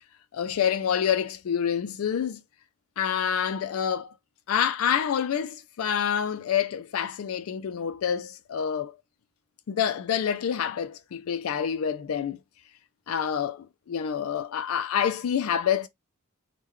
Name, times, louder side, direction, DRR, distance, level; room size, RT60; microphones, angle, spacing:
voice 1, 0.3-2.4 3.0-4.1 4.5-9.0 9.7-12.4 13.1-15.9, left 8 dB, 80° left, 0.4 m, -27 dB
3.6 x 2.2 x 3.0 m
head